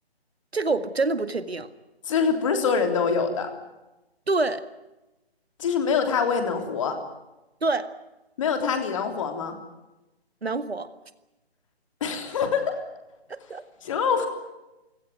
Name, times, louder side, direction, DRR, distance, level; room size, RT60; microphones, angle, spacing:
voice 1, 0.5-1.7 4.3-4.6 7.6-7.9 10.4-10.9 13.3-13.6, right 3 dB, 75° right, 12 dB, 2.0 m, -26 dB
voice 2, 2.1-3.5 5.6-7.0 8.4-9.6 12.0-12.8 13.8-14.3, left 6 dB, 30° left, 6 dB, 3.5 m, -24 dB
28.0 x 17.0 x 9.3 m, 1.0 s
figure-of-eight pair, 150°, 32 cm